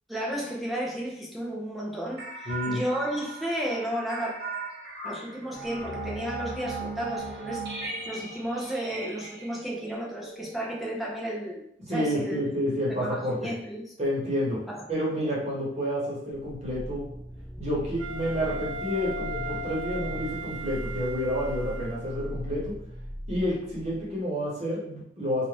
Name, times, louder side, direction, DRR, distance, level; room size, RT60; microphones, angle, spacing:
voice 1, 0.1-4.3 5.0-11.6 11.9-12.4 12.9-13.9 14.7-14.9 15.2-15.3, right 1 dB, ahead, -4 dB, 0.4 m, -33 dB
sound 1, 2.2-11.1, right 3 dB, 60° right, 0.7 m, -38 dB
voice 2, 2.5-2.8 11.9-13.5 14.0-14.6 14.9-17.0 17.6-22.7 23.3-25.5, equal, 35° right, -6 dB, 1.0 m, -29 dB
sound 2, 16.3-24.1, equal, 15° left, 1.1 m, -39 dB
Wind instrument woodwind instrument, 18.0-22.3, right 1 dB, 90° right, 0.8 m, -38 dB
2.4 x 2.4 x 3.3 m, 0.74 s
head